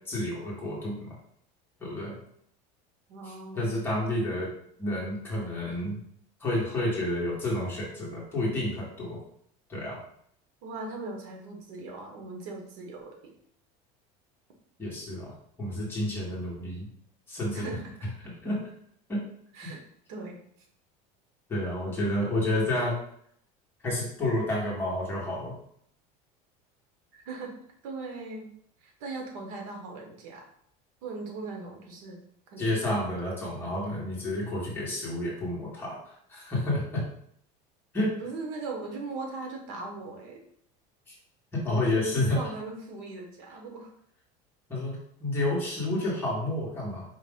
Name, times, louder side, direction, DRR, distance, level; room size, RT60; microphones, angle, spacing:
voice 1, 0.1-1.0 1.8-2.2 3.2-4.5 4.8-6.0 6.4-9.2 9.7-10.0 14.8-15.3 15.6-16.9 17.3-17.6 18.4-18.6 19.1-19.2 19.6-19.7 21.5-23.0 23.8-25.6 32.6-37.0 37.9-38.1 41.1-41.2 41.5-42.4 44.7-47.0, left 1 dB, 10° left, -5 dB, 1.2 m, -30 dB
voice 2, 3.1-3.8 10.6-13.3 17.5-17.8 19.5-19.8 20.1-20.4 27.1-27.5 27.8-28.5 28.8-30.5 31.0-32.2 32.5-32.8 38.0-40.4 42.0-43.9, right 3 dB, 75° right, 1 dB, 1.0 m, -39 dB
5.0 x 2.5 x 3.6 m, 0.67 s
cardioid pair, 175°, 18 cm